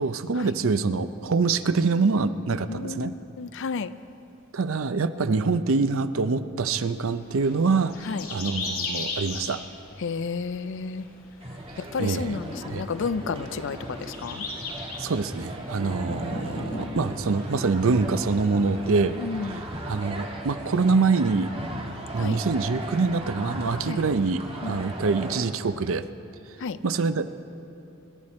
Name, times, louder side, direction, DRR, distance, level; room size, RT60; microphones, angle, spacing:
voice 1, 0.0-3.1 4.5-7.9 8.3-9.6 11.8-12.4 12.7-12.8 15.0-19.2 19.4-21.5 22.1-26.0 26.8-27.3, right 4 dB, 65° right, 11 dB, 0.6 m, -25 dB
voice 2, 2.7-3.9 8.1-8.2 10.0-11.0 11.8-14.4 19.2-19.7 22.2-22.4 23.8-24.0 24.6-24.8 26.6-26.8, left 5 dB, 60° left, 14 dB, 0.5 m, -31 dB
sound 1, 6.8-19.8, left 4 dB, 85° left, 2.4 m, -40 dB
sound 2, 11.4-25.4, right 1 dB, 25° right, 1.5 m, -37 dB
sound 3, 11.9-20.2 20.7-20.8, left 1 dB, 25° left, 1.2 m, -41 dB
25.0 x 11.5 x 4.3 m, 2.7 s
head